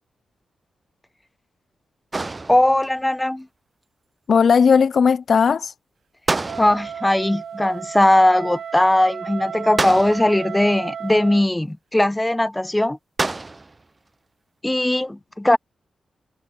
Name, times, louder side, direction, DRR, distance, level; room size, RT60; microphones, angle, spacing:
sound 1, 2.1-3.0 6.3-7.1 9.8-10.5 13.2-13.8, right 3 dB, 25° right, 0.4 m, -27 dB
voice 1, 2.5-3.5 6.6-13.0 14.6-15.6, left 1 dB, 10° left, 0.7 m, -19 dB
voice 2, 4.3-5.7 15.5-15.6, left 6 dB, 60° left, 0.3 m, -16 dB
Wind instrument woodwind instrument, 6.4-11.4, right 7 dB, 70° right, 0.7 m, -34 dB
cardioid pair, 80°, 0 cm